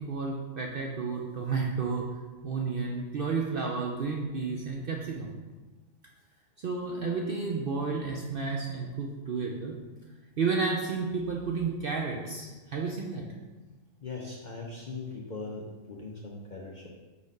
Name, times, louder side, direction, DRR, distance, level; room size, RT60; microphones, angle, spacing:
voice 1, 0.0-2.0 2.4-5.4 6.6-9.7 10.4-13.2, right 4 dB, 60° right, -1 dB, 0.6 m, -31 dB
voice 2, 14.0-16.9, left 3 dB, 50° left, -2 dB, 0.6 m, -40 dB
4.9 x 4.1 x 5.2 m, 1.3 s
omnidirectional pair, 1.5 m